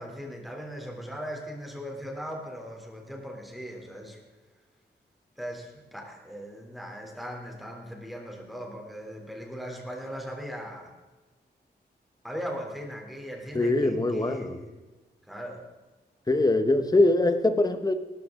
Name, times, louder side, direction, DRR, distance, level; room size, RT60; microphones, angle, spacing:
voice 1, 0.0-4.2 5.4-10.9 12.2-14.7 15.3-15.6, equal, ahead, 1 dB, 3.5 m, -39 dB
voice 2, 13.5-14.6 16.3-17.9, left 2 dB, 20° left, 9 dB, 1.2 m, -23 dB
18.5 x 14.0 x 3.9 m, 1.2 s
wide cardioid pair, 120°, 17 cm